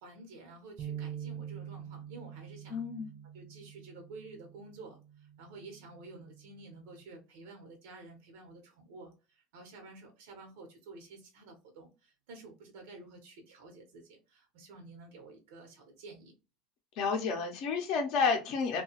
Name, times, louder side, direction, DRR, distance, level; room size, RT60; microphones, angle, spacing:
voice 1, 0.0-2.8 3.3-16.3, right 3 dB, 90° right, 0.9 m, -51 dB
sound 1, 0.8-7.0, right 9 dB, 25° right, 0.4 m, -46 dB
voice 2, 2.7-3.1 17.0-18.8, left 5 dB, 50° left, 0.5 m, -30 dB
2.7 x 2.3 x 2.8 m
cardioid pair, 165°, 0 cm